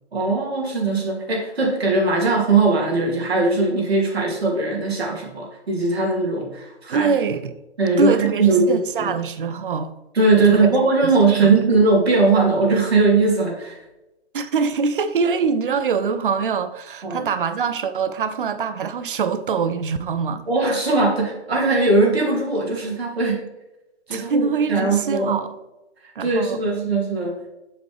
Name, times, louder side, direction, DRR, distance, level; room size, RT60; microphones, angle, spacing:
voice 1, 0.1-7.1 7.8-9.1 10.1-13.8 17.0-17.2 20.5-23.5 24.1-25.4 26.2-27.4, right 3 dB, 65° right, 2.7 m, -19 dB
voice 2, 6.9-7.5 8.0-9.9 10.3-10.7 11.4-11.5 14.3-20.4 24.1-25.5 26.2-26.6, right 5 dB, 50° right, 0.7 m, -23 dB
7.6 x 7.2 x 3.4 m
figure-of-eight pair, 130°, 34 cm